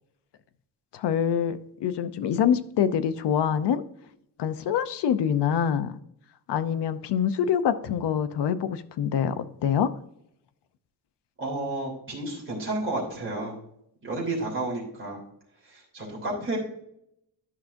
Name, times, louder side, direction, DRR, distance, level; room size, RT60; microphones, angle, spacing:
voice 1, 0.9-3.8 4.4-5.9 6.5-9.9, left 8 dB, 70° left, 11 dB, 0.7 m, -25 dB
voice 2, 11.4-13.6 14.0-15.2 15.6-16.6, right 2 dB, 30° right, -4 dB, 3.2 m, -31 dB
11.0 x 5.8 x 2.6 m, 0.74 s
wide cardioid pair, 170°, 43 cm